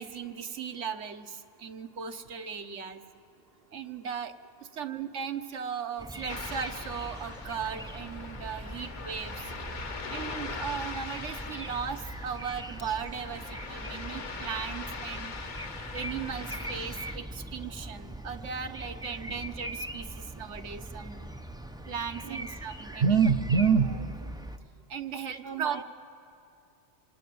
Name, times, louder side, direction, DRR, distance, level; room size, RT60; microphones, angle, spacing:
voice 1, 0.0-3.0 3.7-4.3 4.7-9.5 10.1-15.4 15.9-21.3 21.9-23.3 24.9-25.8, right 7 dB, 85° right, 8 dB, 1.4 m, -37 dB
sound 1, 6.0-24.6, right 1 dB, 5° right, 0.4 m, -41 dB
Ocean, 6.3-17.2, left 4 dB, 45° left, 1.0 m, -41 dB
voice 2, 23.0-24.3 25.4-25.8, right 6 dB, 55° right, 2 dB, 0.9 m, -25 dB
27.0 x 20.0 x 9.3 m, 2.5 s
omnidirectional pair, 1.2 m